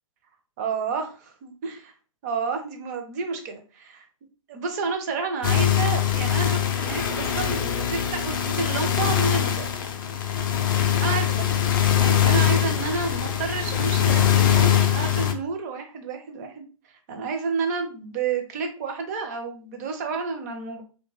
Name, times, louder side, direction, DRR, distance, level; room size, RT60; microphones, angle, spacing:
voice 1, 0.6-1.9 2.2-4.0 4.5-9.7 11.0-11.5 12.0-16.7 17.1-20.8, right 5 dB, 30° right, 5 dB, 0.5 m, -30 dB
sound 1, 5.4-15.3, left 10 dB, 40° left, 0.4 m, -22 dB
2.5 x 2.2 x 3.0 m, 0.37 s
figure-of-eight pair, 120°, 17 cm